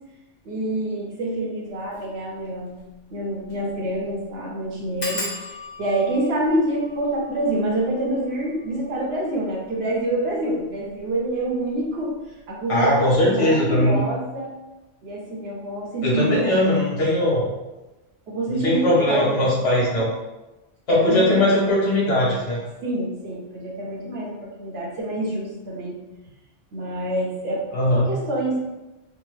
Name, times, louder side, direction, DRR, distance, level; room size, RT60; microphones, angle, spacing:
voice 1, 0.4-2.8 3.1-5.3 5.8-12.1 12.5-14.5 15.0-16.5 18.3-19.8 20.9-21.5 22.8-26.0 26.7-27.6 27.9-28.6, right 1 dB, 65° right, -2 dB, 1.0 m, -26 dB
sound 1, 1.8-2.0 2.4-2.5 2.8-2.9 3.4-3.7 3.9-4.0 5.0-10.3 11.0-11.5 11.8-12.1 12.4-12.5, left 1 dB, 45° left, 0.7 m, -38 dB
voice 2, 12.7-14.0 16.0-17.5 18.5-20.1 20.9-22.6 27.7-28.1, left 1 dB, 85° left, -5 dB, 1.4 m, -20 dB
3.5 x 2.0 x 3.2 m, 1.0 s
omnidirectional pair, 1.2 m